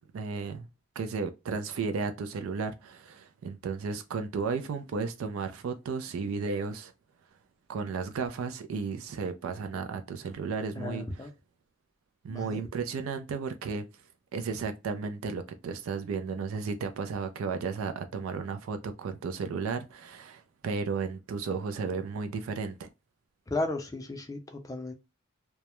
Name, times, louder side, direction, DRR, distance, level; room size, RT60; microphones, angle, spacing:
voice 1, 0.1-0.7 1.0-6.9 7.7-11.3 12.2-13.9 14.3-22.9, right 5 dB, 80° right, 0.4 m, -34 dB
voice 2, 10.8-11.3 12.3-12.6 23.5-24.9, left 2 dB, 15° left, 0.4 m, -34 dB
2.2 x 2.0 x 2.8 m
head